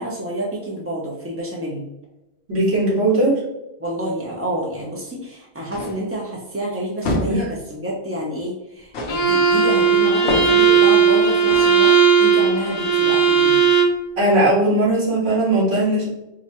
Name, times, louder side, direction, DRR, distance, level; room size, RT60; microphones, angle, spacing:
voice 1, 0.0-1.9 3.8-13.8, right 1 dB, 20° right, -3 dB, 0.4 m, -28 dB
voice 2, 2.5-3.4 14.2-16.1, right 1 dB, 80° right, -6 dB, 1.8 m, -18 dB
sound 1, 5.7-6.1 7.0-7.5 8.9-9.3 10.3-10.7 11.5-11.8, left 1 dB, 85° left, 1.0 m, -26 dB
Bowed string instrument, 9.1-14.0, right 6 dB, 50° left, 0.6 m, -16 dB
4.7 x 2.1 x 2.9 m, 0.95 s
omnidirectional pair, 1.1 m